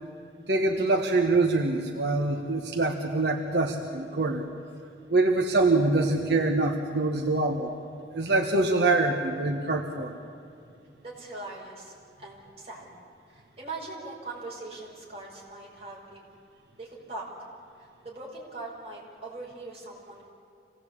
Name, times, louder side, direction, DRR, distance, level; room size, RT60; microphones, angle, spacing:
voice 1, 0.5-4.5 5.1-7.7 8.1-10.2, right 2 dB, 70° right, 2 dB, 1.4 m, -25 dB
voice 2, 11.0-12.9 13.3-16.2 16.8-17.3 17.8-20.3, right 2 dB, 35° right, -3 dB, 5.7 m, -41 dB
26.0 x 18.0 x 8.6 m, 2.5 s
head